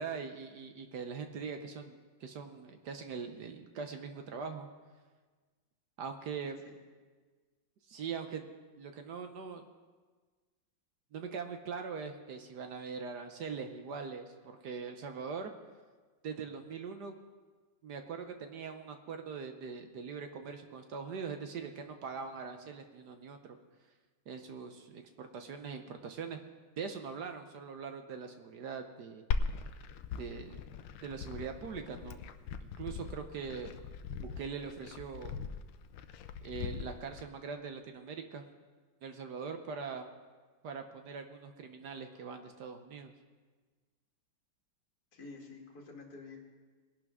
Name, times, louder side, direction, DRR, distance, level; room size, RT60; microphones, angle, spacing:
voice 1, 0.0-4.7 6.0-6.6 7.9-8.5 8.8-9.6 11.1-15.5 16.2-17.1 17.8-23.6 24.3-26.4 26.8-29.2 30.2-30.6 31.0-32.2 32.6-33.7 34.2-35.4 36.4-38.4 39.0-40.1 40.6-43.1, right 5 dB, 65° right, 6 dB, 1.3 m, -42 dB
Glass, 29.3-37.3, left 5 dB, 80° left, 1.4 m, -40 dB
voice 2, 45.1-46.4, left 3 dB, 50° left, -1 dB, 2.2 m, -49 dB
21.0 x 11.5 x 3.6 m, 1.4 s
omnidirectional pair, 2.1 m